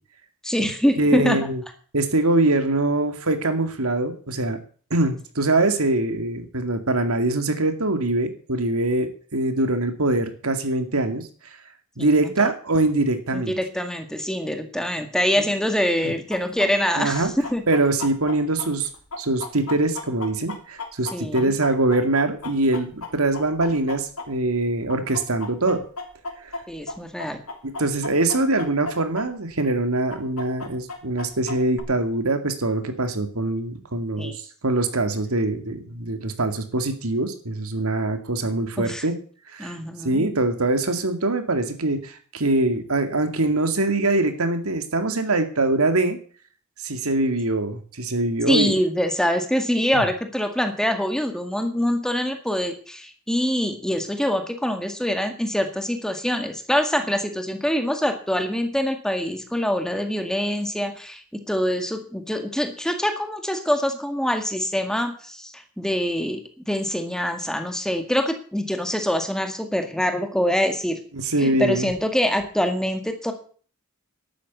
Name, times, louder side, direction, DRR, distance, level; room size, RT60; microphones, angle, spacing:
voice 1, 0.4-1.4 12.0-12.5 13.3-17.2 17.5-17.6 21.1-21.5 26.7-27.4 34.2-34.4 38.8-39.0 39.6-40.3 48.5-71.0 71.4-73.3, equal, 5° left, 6 dB, 2.0 m, -25 dB
voice 2, 1.0-1.6 1.9-4.6 4.9-11.3 12.0-13.5 17.0-17.3 17.7-18.9 19.2-25.8 26.4-26.5 27.6-34.3 34.6-39.2 39.5-39.8 40.0-46.2 46.8-48.8 49.9-50.0 71.1-71.9, right 2 dB, 90° right, 8 dB, 2.3 m, -23 dB
Chicken rooster, 16.3-24.6 24.9-29.2 29.5-29.6 30.1-31.8, left 3 dB, 90° left, 3.1 m, -35 dB
12.0 x 9.2 x 8.3 m, 0.44 s
head